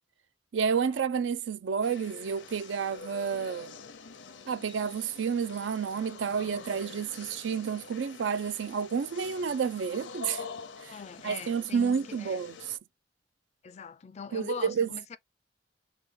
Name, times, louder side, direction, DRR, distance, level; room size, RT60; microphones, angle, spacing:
voice 1, 0.5-3.7 4.5-10.4 10.8-10.9 11.2-12.5 14.3-14.9, right 6 dB, 80° right, 0.4 m, -30 dB
sound 1, 1.8-12.8, left 5 dB, 85° left, 0.7 m, -46 dB
voice 2, 10.9-12.4 13.6-15.2, left 5 dB, 35° left, 0.3 m, -42 dB
3.8 x 2.3 x 3.6 m
head